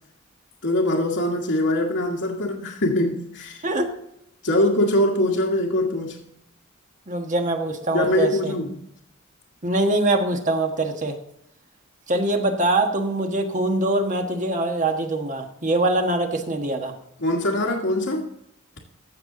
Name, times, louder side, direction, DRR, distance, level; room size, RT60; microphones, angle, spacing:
voice 1, 0.6-3.6 4.4-6.2 7.9-8.8 17.2-18.3, left 1 dB, 75° left, -5 dB, 1.7 m, -22 dB
voice 2, 7.1-8.5 9.6-11.2 12.1-16.9, right 2 dB, 35° right, 4 dB, 1.4 m, -23 dB
15.0 x 6.9 x 3.8 m, 0.77 s
head